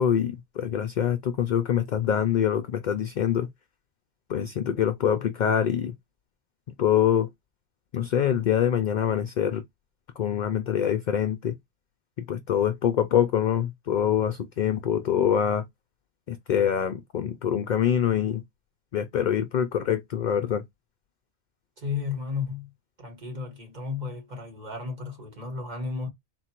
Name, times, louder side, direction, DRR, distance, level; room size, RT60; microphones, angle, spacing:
voice 1, 0.0-3.5 4.3-5.9 6.8-7.3 7.9-9.6 10.2-11.5 12.2-15.6 16.3-18.4 18.9-20.6, left 9 dB, 55° left, 0.5 m, -25 dB
voice 2, 21.8-22.7 23.0-26.1, left 5 dB, 45° right, 1.4 m, -33 dB
3.9 x 2.4 x 4.4 m
omnidirectional pair, 1.1 m